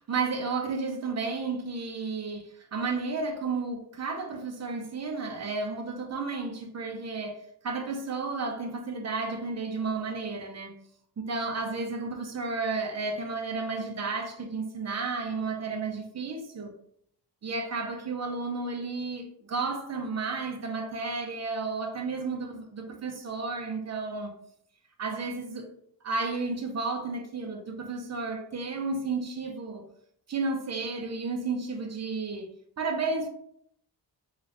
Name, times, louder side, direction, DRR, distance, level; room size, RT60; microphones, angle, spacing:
voice 1, 0.0-10.7 11.2-16.7 17.4-24.3 25.0-25.7 26.0-29.8 30.3-33.3, right 4 dB, 40° right, 0.6 m, -32 dB
3.7 x 2.4 x 3.3 m
wide cardioid pair, 160°, 41 cm